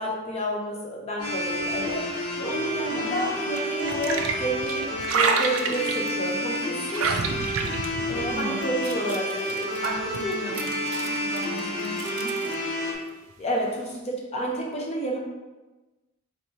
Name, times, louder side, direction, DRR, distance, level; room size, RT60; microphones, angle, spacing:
voice 1, 0.0-2.1 2.4-4.9 5.1-7.1 8.0-9.7 10.2-10.4 13.4-15.2, right 1 dB, 30° left, -2 dB, 0.5 m, -30 dB
sound 1, 1.2-12.9, equal, 85° left, 1.2 m, -30 dB
sound 2, 1.3-3.0 3.6-6.1 6.5-12.6, right 5 dB, 80° right, 0.4 m, -31 dB
voice 2, 2.9-3.2 8.2-8.7 9.8-12.5, right 1 dB, 45° right, 0 dB, 0.6 m, -36 dB
4.4 x 3.1 x 2.7 m, 1.2 s
head